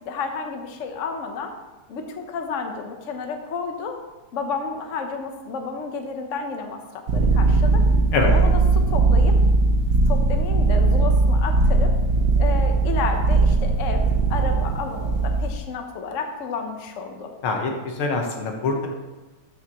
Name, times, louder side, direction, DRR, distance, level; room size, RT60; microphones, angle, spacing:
voice 1, 0.0-1.5 1.9-4.0 4.3-6.8 7.1-7.8 8.2-9.3 10.1-11.9 12.4-17.3 18.7-18.9, left 5 dB, 55° left, 4 dB, 0.9 m, -31 dB
sound 1, 7.1-15.6, right 3 dB, 60° right, 1.2 m, -19 dB
voice 2, 17.4-18.9, left 3 dB, 80° left, 2 dB, 2.0 m, -24 dB
12.5 x 5.8 x 3.0 m, 1.2 s
omnidirectional pair, 2.4 m